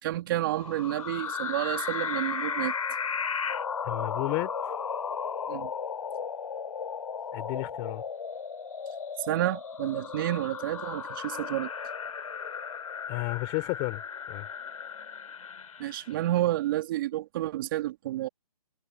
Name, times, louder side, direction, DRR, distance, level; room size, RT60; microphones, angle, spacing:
voice 1, 0.0-2.7 5.5-5.7 9.2-11.7 15.8-18.3, right 14 dB, 35° right, 3.3 m, -30 dB
sound 1, 0.5-16.2, left 6 dB, 65° left, 3.5 m, -35 dB
voice 2, 3.8-4.5 7.3-8.0 13.1-14.0 14.3-14.5, left 33 dB, 25° left, 4.0 m, -32 dB
hypercardioid pair, 150°, 19 cm